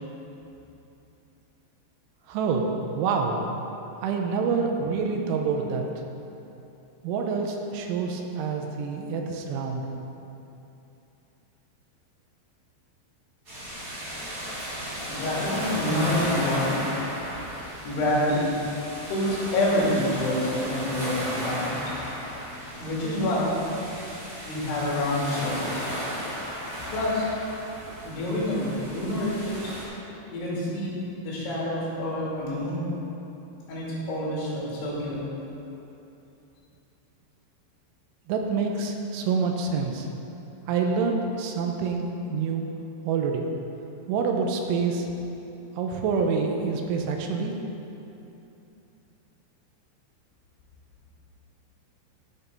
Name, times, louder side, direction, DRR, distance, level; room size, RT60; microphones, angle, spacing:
voice 1, 2.3-3.4 4.0-5.8 7.0-9.8 38.3-40.1 40.7-42.7 43.0-43.4 44.1-45.1 45.8-47.6, right 5 dB, 85° right, 2 dB, 3.1 m, -27 dB
sound 1, 13.4-29.8, equal, 30° right, 2.1 m, -34 dB
voice 2, 15.0-16.8 17.8-18.5 19.1-21.9 22.8-23.6 24.4-25.6 26.9-27.3 28.0-29.7 30.3-31.0 31.2-32.9 33.7-35.3, left 1 dB, 70° left, -6 dB, 4.8 m, -27 dB
14.0 x 6.0 x 5.4 m, 2.9 s
omnidirectional pair, 5.7 m